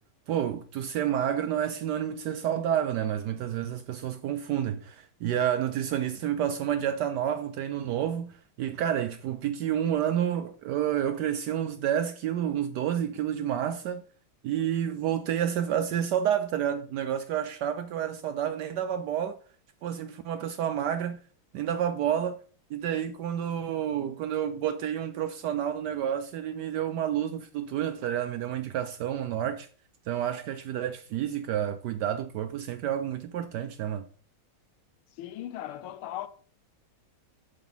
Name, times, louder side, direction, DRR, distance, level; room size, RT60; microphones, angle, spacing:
voice 1, 0.3-14.0 14.4-19.4 19.8-21.2 21.5-22.4 22.7-29.7 30.1-34.0, right 10 dB, 80° right, 0.9 m, -29 dB
voice 2, 35.2-36.3, left 12 dB, 90° left, 1.6 m, -37 dB
7.5 x 4.0 x 5.3 m
omnidirectional pair, 2.3 m